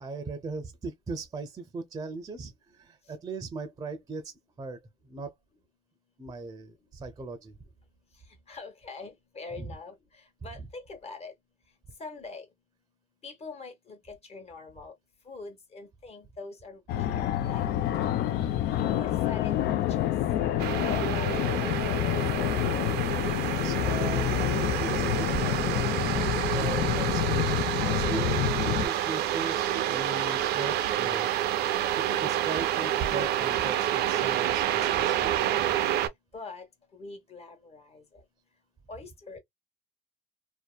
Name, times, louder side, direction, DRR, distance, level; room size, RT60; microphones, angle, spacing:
voice 1, 0.0-4.8 5.0-5.3 6.2-7.6 9.6-9.8 23.4-31.3 32.0-35.7, right 3 dB, 20° right, 0.5 m, -39 dB
voice 2, 8.5-11.3 12.0-12.5 13.2-14.9 15.2-17.6 18.7-19.8 20.7-21.8 22.1-22.7 36.3-36.7 36.9-38.2 38.9-39.4, left 3 dB, 40° left, 1.1 m, -44 dB
Fixed-wing aircraft airplane, 16.9-28.9, left 12 dB, 70° left, 0.4 m, -28 dB
sound 1, 20.6-36.1, right 11 dB, 75° right, 0.5 m, -28 dB
2.7 x 2.1 x 2.2 m
cardioid pair, 110°, 17 cm